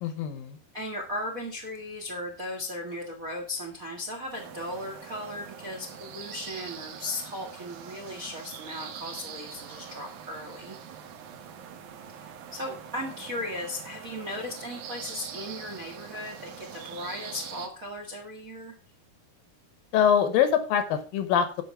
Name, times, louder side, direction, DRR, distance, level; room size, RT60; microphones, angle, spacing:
voice 1, 0.0-0.6 19.9-21.6, left 8 dB, 75° left, 11 dB, 2.4 m, -24 dB
voice 2, 0.7-10.8 12.1-18.8, left 1 dB, 45° right, 2 dB, 1.1 m, -37 dB
sound 1, 4.3-17.7, right 7 dB, 65° right, 2.2 m, -43 dB
10.5 x 6.0 x 5.5 m, 0.38 s
omnidirectional pair, 4.6 m